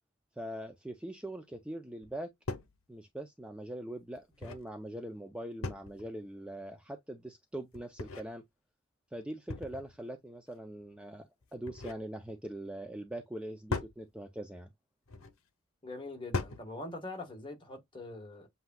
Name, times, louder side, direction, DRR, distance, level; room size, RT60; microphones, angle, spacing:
voice 1, 0.4-2.3 2.9-8.4 9.1-14.7, right 1 dB, 5° right, 0.5 m, -42 dB
sound 1, 2.0-2.1 2.5-2.8 4.1-4.7 5.6-6.1 7.7-8.3 9.5-10.0 11.4-12.1 13.7-14.0 15.1-15.4 16.3-16.7, left 3 dB, 75° left, 0.8 m, -38 dB
voice 2, 15.8-18.5, left 2 dB, 25° left, 1.3 m, -43 dB
7.7 x 2.7 x 2.3 m
head